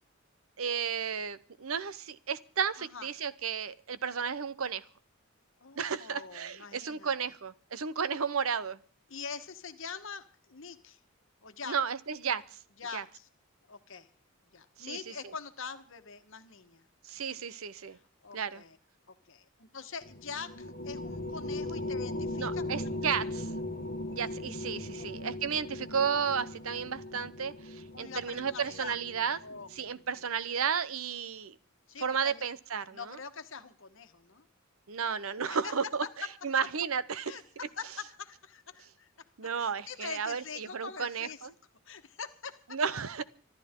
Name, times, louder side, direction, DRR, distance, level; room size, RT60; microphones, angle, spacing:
voice 1, 0.6-4.8 5.8-8.8 11.7-12.6 12.9-13.0 14.8-15.0 15.2-15.3 17.0-18.0 18.3-18.6 22.4-23.5 24.1-29.4 29.7-31.6 32.0-33.2 34.9-36.0 36.4-37.4 39.4-41.5 42.7-43.2, right 6 dB, 80° right, 17 dB, 0.8 m, -33 dB
voice 2, 2.8-3.1 5.6-7.1 9.1-11.0 11.4-11.7 12.8-13.3 13.7-14.1 14.5-16.8 17.1-17.4 17.9-18.8 19.1-22.9 23.2-23.3 25.0-25.3 27.9-29.0 29.4-29.7 31.9-32.5 32.9-34.4 35.5-35.7 37.3-39.1 39.6-41.4 41.8-42.8, left 5 dB, 60° left, 9 dB, 1.4 m, -44 dB
sound 1, 20.0-29.8, left 1 dB, 45° left, 1.1 m, -38 dB
25.5 x 12.5 x 3.7 m, 0.42 s
head